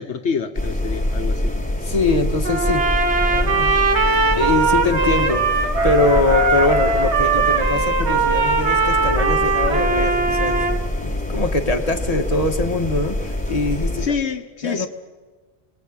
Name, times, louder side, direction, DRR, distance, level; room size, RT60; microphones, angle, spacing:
voice 1, 0.0-1.5 14.0-14.9, left 6 dB, 80° left, 1.4 m, -27 dB
sound 1, 0.5-14.1, left 1 dB, 5° left, 4.1 m, -25 dB
voice 2, 1.8-2.8 3.3-3.7 4.4-14.1 14.6-14.9, left 2 dB, 35° left, 2.0 m, -23 dB
Trumpet, 2.4-10.8, right 4 dB, 85° right, 2.0 m, -20 dB
28.5 x 20.5 x 9.0 m
omnidirectional pair, 1.1 m